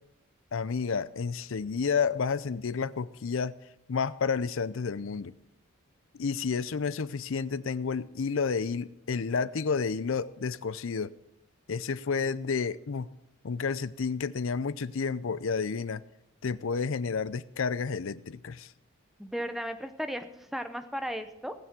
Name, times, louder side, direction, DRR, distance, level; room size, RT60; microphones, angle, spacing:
voice 1, 0.5-3.5 3.9-5.3 6.1-11.1 11.7-13.1 13.4-16.0 16.4-18.7, left 5 dB, 65° left, 17 dB, 0.5 m, -30 dB
voice 2, 19.2-21.5, equal, ahead, 8 dB, 0.8 m, -35 dB
19.0 x 6.9 x 6.1 m, 0.81 s
head